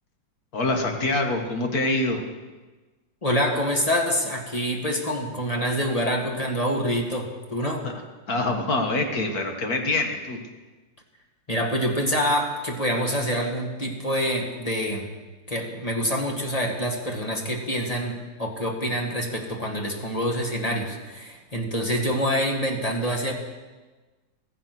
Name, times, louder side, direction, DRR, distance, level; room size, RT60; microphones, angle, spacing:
voice 1, 0.5-2.2 7.8-7.9 8.3-10.4, left 2 dB, 50° left, 3 dB, 2.2 m, -25 dB
voice 2, 3.2-7.8 11.5-15.1 15.5-23.3, equal, 20° left, 1 dB, 2.0 m, -26 dB
15.5 x 15.0 x 6.2 m, 1.3 s
omnidirectional pair, 2.1 m